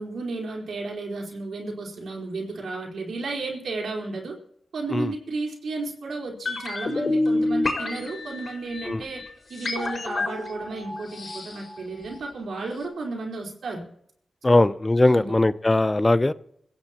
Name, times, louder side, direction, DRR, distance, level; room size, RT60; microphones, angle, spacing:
voice 1, 0.0-4.4 4.7-9.2 9.5-13.9 14.5-14.6 15.1-15.3, right 3 dB, 85° right, 0 dB, 4.3 m, -33 dB
sound 1, 6.5-12.5 12.8-12.9, left 2 dB, 60° left, 5.4 m, -29 dB
voice 2, 14.4-16.3, left 2 dB, 25° left, 15 dB, 0.6 m, -20 dB
25.5 x 15.5 x 3.0 m, 0.69 s
cardioid pair, 70°, 0 cm